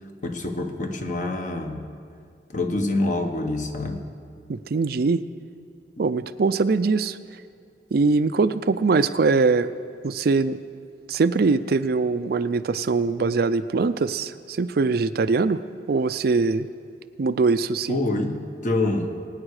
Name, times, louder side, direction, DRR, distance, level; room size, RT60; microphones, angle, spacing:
voice 1, 0.2-1.9 2.5-4.0 17.9-19.1, left 2 dB, 45° left, 4 dB, 1.3 m, -26 dB
voice 2, 4.5-5.2 6.0-7.2 7.9-9.7 10.0-10.6 11.1-15.6 15.9-16.7 17.2-18.0, right 4 dB, 60° right, 12 dB, 0.4 m, -22 dB
23.0 x 9.8 x 4.9 m, 2.3 s
head